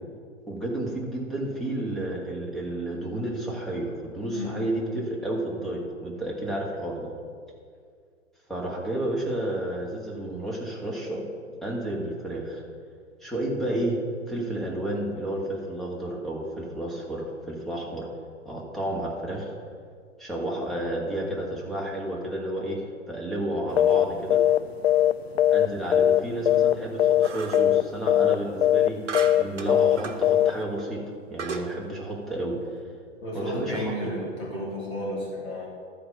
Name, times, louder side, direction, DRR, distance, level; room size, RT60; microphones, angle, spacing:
voice 1, 0.5-7.1 8.5-11.2 11.6-12.6 13.2-14.0 14.3-18.1 18.4-19.5 20.2-22.8 23.1-24.4 25.5-29.1 29.4-31.0 31.3-32.6 33.3-33.9, right 1 dB, ahead, -4 dB, 1.7 m, -31 dB
sound 1, 23.8-24.0 24.3-24.6 24.8-26.2 26.5-26.7 27.0-27.3 27.5-27.8 28.1-28.3 28.6-28.9 29.1-29.4 29.7-30.0 30.2-30.5, left 11 dB, 55° left, 0.5 m, -19 dB
sound 2, 27.2-27.7 29.1-30.2 30.8-30.9 31.4-31.7, right 5 dB, 70° right, 1.0 m, -35 dB
voice 2, 33.2-35.7, equal, 30° left, -5 dB, 3.1 m, -32 dB
13.0 x 5.0 x 7.0 m, 2.1 s
figure-of-eight pair, 110°, 37 cm